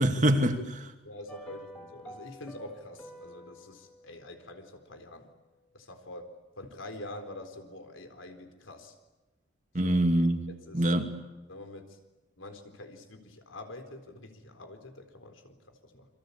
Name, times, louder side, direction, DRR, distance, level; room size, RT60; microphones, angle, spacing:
voice 1, 0.0-0.9 9.7-11.2, right 1 dB, 40° right, 2.4 m, -25 dB
voice 2, 1.0-5.3 5.7-8.9 9.8-10.0 10.5-10.8 11.5-12.0 12.4-16.1, left 1 dB, 90° left, 4.1 m, -46 dB
sound 1, 1.3-5.6 5.8-5.9, right 1 dB, 5° left, 3.4 m, -50 dB
29.0 x 23.5 x 8.6 m
head